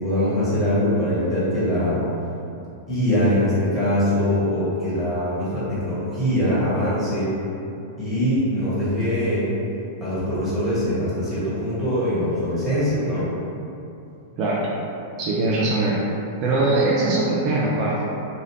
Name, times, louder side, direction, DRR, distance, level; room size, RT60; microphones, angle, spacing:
voice 1, 0.0-2.0 2.9-7.3 8.0-9.5 10.0-13.3, equal, 10° left, -12 dB, 1.4 m, -22 dB
voice 2, 15.2-16.0 16.4-18.0, right 2 dB, 40° right, -6 dB, 0.4 m, -21 dB
3.2 x 2.3 x 3.0 m, 2.7 s
figure-of-eight pair, 95°, 0 cm